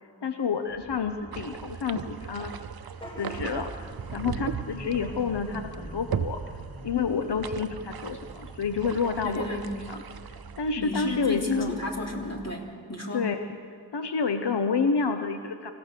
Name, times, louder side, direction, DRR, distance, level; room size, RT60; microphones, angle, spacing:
voice 1, 0.2-2.5 3.2-6.4 6.8-9.6 9.9-10.0 10.6-11.7 13.1-13.5 13.9-15.7, left 5 dB, 80° left, 7 dB, 0.9 m, -29 dB
sound 1, 0.7-12.6, right 2 dB, 10° right, 2.3 m, -48 dB
sound 2, 1.3-10.7, right 8 dB, 65° right, 0.7 m, -38 dB
Vehicle horn car horn honking / Bus, 2.9-9.0, right 1 dB, 15° left, 4.7 m, -44 dB
voice 2, 9.3-9.7 10.8-13.3, left 2 dB, 40° left, 0 dB, 3.3 m, -31 dB
25.5 x 16.5 x 6.7 m, 2.5 s
wide cardioid pair, 65°, 40 cm